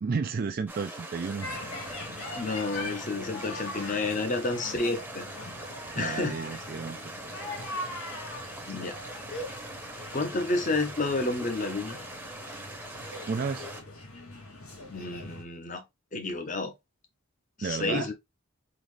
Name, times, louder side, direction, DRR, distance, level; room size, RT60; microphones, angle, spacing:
voice 1, 0.0-1.5 6.0-7.4 13.3-13.7 17.6-18.1, right 5 dB, 45° right, 0.3 m, -32 dB
sound 1, 0.7-13.8, right 1 dB, 10° right, 0.8 m, -42 dB
sound 2, 1.4-15.4, left 2 dB, 85° left, 1.5 m, -41 dB
voice 2, 2.4-5.2 6.0-6.6 8.7-9.0 10.1-12.0 14.9-15.8 16.1-16.7 17.6-18.1, left 3 dB, 35° left, 0.8 m, -30 dB
3.9 x 3.1 x 3.1 m
head